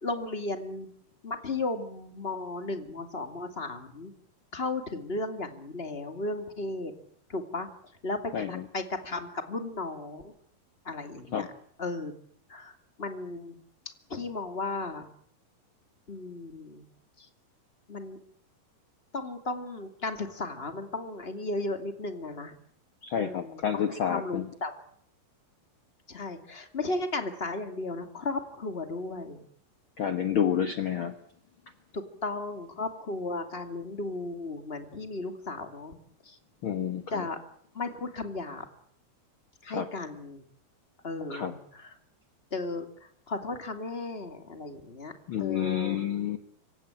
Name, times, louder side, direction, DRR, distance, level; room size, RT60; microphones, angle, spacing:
voice 1, 0.0-0.9 1.2-4.1 4.5-6.9 7.3-7.7 8.0-10.3 10.8-11.4 11.8-12.1 12.5-12.7 13.0-13.5 14.1-15.1 16.1-16.9 17.2-17.3 17.9-18.2 19.1-22.5 23.2-24.7 26.1-29.4 31.9-36.0 36.3-36.4 37.1-37.4 37.7-38.7 39.6-40.4 41.0-41.9 42.5-42.9 43.3-45.1 45.4-46.0, left 2 dB, 20° left, 7 dB, 2.0 m, -35 dB
voice 2, 8.3-8.7 11.3-11.5 23.0-24.5 30.0-31.1 36.6-37.3 39.7-39.9 41.3-41.5 45.3-46.4, left 9 dB, 85° left, 8 dB, 1.1 m, -29 dB
26.0 x 16.5 x 9.0 m, 0.65 s
omnidirectional pair, 4.3 m